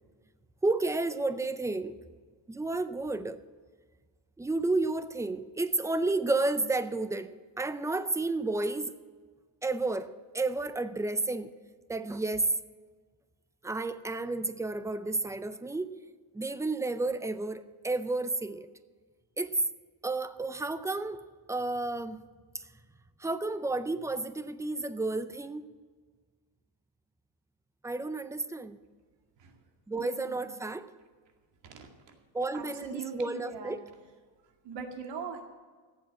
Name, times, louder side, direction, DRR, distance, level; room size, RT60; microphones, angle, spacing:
voice 1, 0.6-2.0 2.5-3.4 4.4-8.9 9.6-11.5 11.9-12.5 13.6-16.0 16.3-18.7 19.4-19.6 20.0-21.2 21.5-22.2 22.5-22.6 23.2-25.7 27.8-28.8 29.9-30.9 32.3-33.8, right 2 dB, 5° right, 0.4 m, -31 dB
voice 2, 32.5-33.8 34.6-35.4, right 6 dB, 70° right, 2.3 m, -40 dB
15.0 x 8.4 x 7.6 m
cardioid pair, 140°, 46 cm